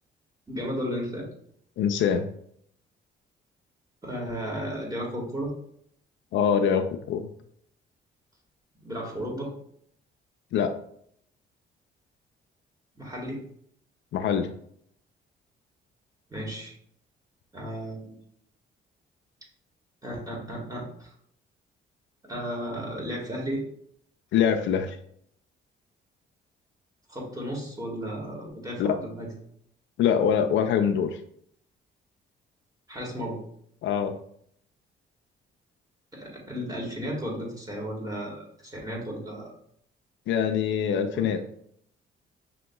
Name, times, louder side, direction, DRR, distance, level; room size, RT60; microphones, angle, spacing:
voice 1, 0.5-1.3 4.0-5.5 8.8-9.5 12.9-13.4 16.3-16.7 17.5-18.1 20.0-21.1 22.2-23.6 27.1-29.3 32.9-33.4 36.1-39.5 41.1-41.3, equal, 20° right, -2 dB, 1.7 m, -34 dB
voice 2, 1.8-2.3 6.3-7.3 10.5-10.7 14.1-14.5 24.3-25.0 28.8-29.0 30.0-31.2 33.8-34.1 40.3-41.4, left 7 dB, 70° left, 7 dB, 0.4 m, -24 dB
5.9 x 2.9 x 2.3 m, 0.67 s
cardioid pair, 90°, 20 cm